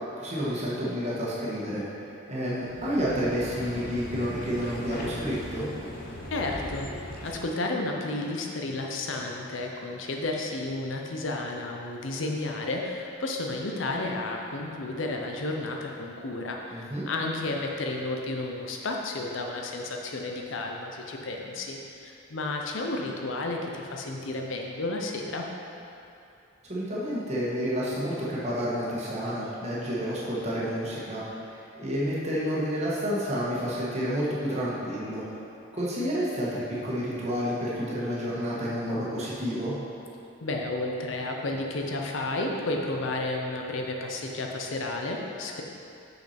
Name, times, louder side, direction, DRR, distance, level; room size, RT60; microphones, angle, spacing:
voice 1, 0.2-1.8 2.2-5.7 16.7-17.1 26.7-35.2 35.7-39.8, equal, 35° right, -7 dB, 1.4 m, -30 dB
sound 1, 2.5-7.6, left 1 dB, 50° left, 0.7 m, -39 dB
voice 2, 6.3-6.9 7.2-25.4 40.4-45.6, left 2 dB, 80° left, 1 dB, 0.7 m, -32 dB
6.1 x 5.7 x 4.3 m, 2.7 s
head